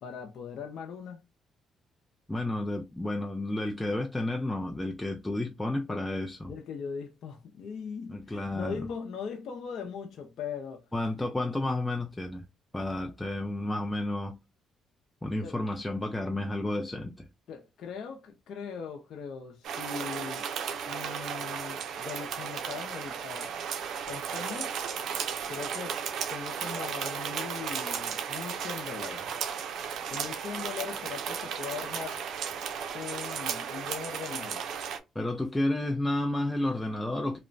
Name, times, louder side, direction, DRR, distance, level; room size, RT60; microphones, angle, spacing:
voice 1, 0.0-1.2 5.9-6.0 6.5-10.9 15.4-15.6 17.5-20.5 20.9-23.5 24.1-24.7 25.5-26.0 26.3-29.3 30.1-32.2 32.9-34.6, left 6 dB, 70° left, 0.5 m, -40 dB
voice 2, 2.3-6.5 8.1-8.8 10.9-12.5 12.7-14.4 15.2-17.3 35.2-37.4, left 1 dB, 10° left, 0.4 m, -31 dB
sound 1, 19.6-35.0, right 7 dB, 70° right, 0.5 m, -35 dB
2.9 x 2.1 x 2.5 m
cardioid pair, 80°, 0 cm